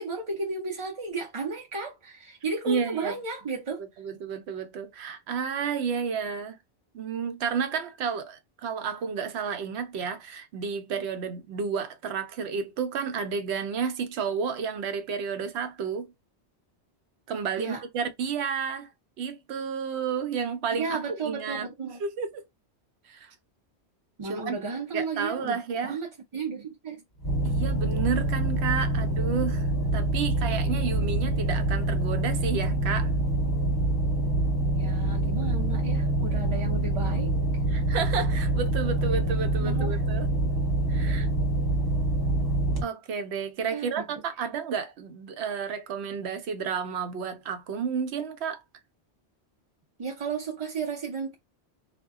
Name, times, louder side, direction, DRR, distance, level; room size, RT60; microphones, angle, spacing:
voice 1, 0.0-3.8 17.6-17.8 20.7-22.0 24.2-27.0 34.7-37.3 39.6-40.0 43.7-44.0 50.0-51.4, right 4 dB, 40° right, 0.4 m, -34 dB
voice 2, 2.6-3.1 4.0-6.6 6.9-16.1 17.3-18.9 19.2-21.7 22.0-22.4 23.1-23.3 24.2-24.6 24.9-26.0 27.4-29.7 29.9-33.1 37.7-40.3 40.9-41.3 42.8-48.6, right 6 dB, 75° right, 0.8 m, -31 dB
sound 1, 27.2-42.8, right 1 dB, 25° left, 0.8 m, -26 dB
2.1 x 2.1 x 3.5 m
omnidirectional pair, 1.1 m